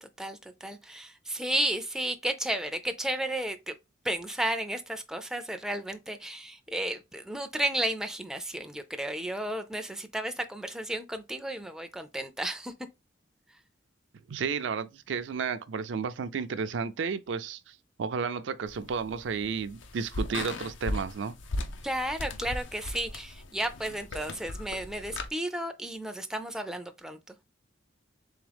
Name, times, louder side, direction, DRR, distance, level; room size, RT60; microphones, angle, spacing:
voice 1, 0.0-3.7 4.0-12.7 13.5-13.6 21.8-27.4, right 1 dB, 5° right, 0.3 m, -33 dB
voice 2, 14.3-21.3, right 5 dB, 75° right, 0.4 m, -32 dB
sound 1, 18.7-25.3, left 2 dB, 80° left, 0.6 m, -38 dB
3.6 x 3.4 x 3.4 m
head